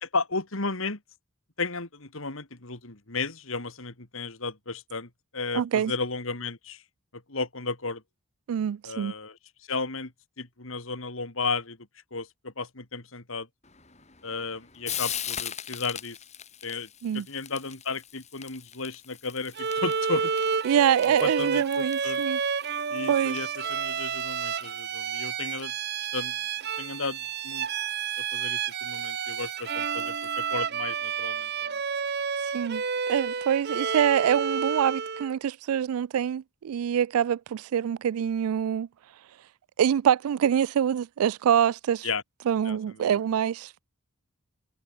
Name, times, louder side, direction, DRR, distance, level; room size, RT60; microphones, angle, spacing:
voice 1, 0.0-1.0 1.6-6.8 7.1-8.0 8.8-9.4 9.7-10.1 10.4-11.8 12.1-13.5 14.2-16.2 16.6-16.9 17.1-20.3 21.1-22.2 22.9-25.7 26.1-26.4 26.8-27.7 28.2-31.8 42.0-42.2 42.6-43.2, left 4 dB, 65° left, 2.8 m, -34 dB
voice 2, 5.5-5.9 8.5-9.1 17.0-17.2 20.6-22.4 23.1-23.4 32.5-32.8 33.1-38.9 39.8-42.1 42.5-43.8, right 9 dB, 80° right, 0.3 m, -25 dB
Frying (food), 13.6-30.6, left 9 dB, 30° left, 5.0 m, -43 dB
Bowed string instrument, 19.6-35.3, right 6 dB, 50° right, 0.8 m, -30 dB
head